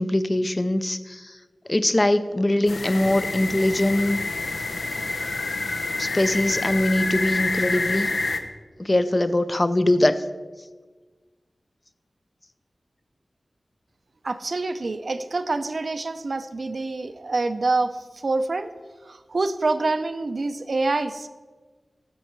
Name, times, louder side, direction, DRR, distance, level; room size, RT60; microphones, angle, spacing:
voice 1, 0.0-1.4 1.7-4.2 6.0-8.1 8.8-10.2, left 1 dB, 30° left, 12 dB, 0.5 m, -22 dB
sound 1, 2.7-8.4, left 3 dB, 85° left, 0.8 m, -28 dB
voice 2, 14.2-18.7 19.0-21.3, right 3 dB, 65° right, 10 dB, 0.6 m, -26 dB
14.0 x 5.4 x 4.6 m, 1.4 s
wide cardioid pair, 70°, 0 cm